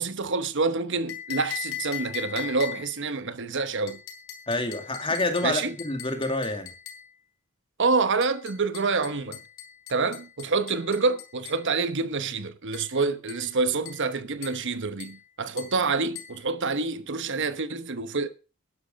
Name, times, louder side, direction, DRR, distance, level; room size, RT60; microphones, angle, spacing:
voice 1, 0.0-4.0 5.4-5.7 7.8-9.4 9.9-18.3, right 4 dB, 55° right, 1.0 m, -27 dB
sound 1, 1.1-3.0 3.9-7.1 8.2-11.7 12.7-12.9 13.3-13.5 13.8-14.1 14.4-14.7 15.0-15.2 15.6-15.8 16.1-16.4, left 10 dB, 65° left, 3.8 m, -39 dB
voice 2, 4.5-6.7, left 2 dB, 25° left, 2.3 m, -27 dB
12.0 x 11.0 x 5.3 m
head